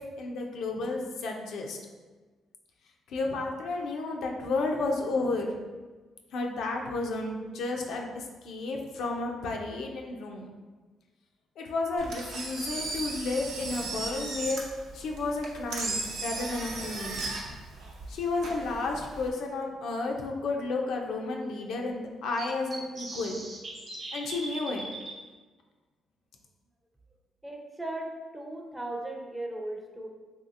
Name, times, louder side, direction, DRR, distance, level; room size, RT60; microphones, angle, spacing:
voice 1, 0.0-1.8 3.1-5.5 6.3-10.5 11.6-14.6 14.9-17.2 18.1-23.4 24.1-24.8, left 3 dB, 75° left, 1 dB, 0.4 m, -32 dB
Engine, 12.0-19.3, right 3 dB, 80° right, 0.6 m, -36 dB
sound 1, 19.5-19.6 19.8-19.9 22.4-25.1, right 2 dB, 45° right, 0.8 m, -40 dB
voice 2, 27.4-30.1, right 1 dB, 10° right, 1 dB, 0.4 m, -37 dB
3.2 x 2.7 x 2.4 m, 1.3 s
cardioid pair, 90°, 0 cm